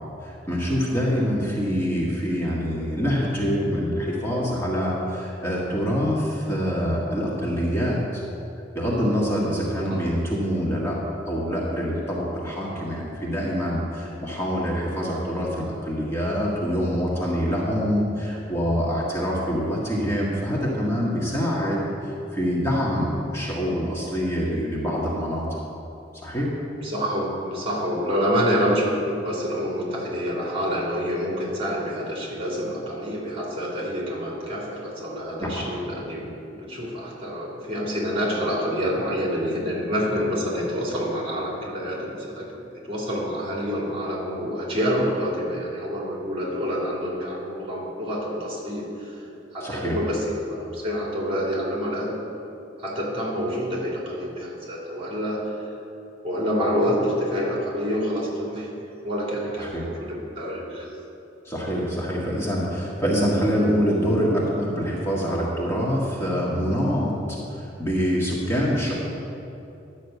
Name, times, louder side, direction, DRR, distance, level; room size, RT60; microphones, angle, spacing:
voice 1, 0.2-8.2 8.7-11.0 11.3-25.6 26.2-26.5 35.4-35.7 49.6-50.0 59.6-59.9 61.4-68.9, equal, 15° left, -5 dB, 1.7 m, -25 dB
voice 2, 26.8-52.1 52.8-55.6 56.2-58.7 59.0-60.9, equal, 30° right, -4 dB, 3.0 m, -27 dB
11.5 x 6.5 x 8.2 m, 2.9 s
head